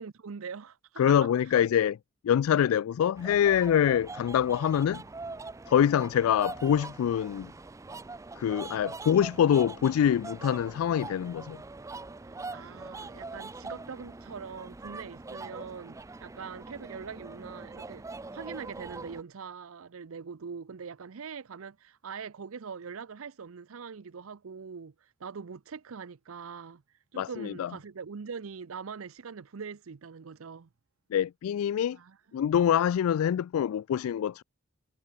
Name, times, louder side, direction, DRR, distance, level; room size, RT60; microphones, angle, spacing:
voice 1, 0.0-1.6 12.2-18.1 18.3-26.8 27.1-30.7 31.9-32.2, right 6 dB, 80° right, 0.6 m, -42 dB
voice 2, 1.0-2.0 2.2-5.0 5.7-7.5 8.4-11.6 27.2-27.7 31.1-32.0 32.3-34.4, left 9 dB, 90° left, 0.3 m, -25 dB
sound 1, 3.1-19.2, right 3 dB, 15° right, 0.4 m, -43 dB
head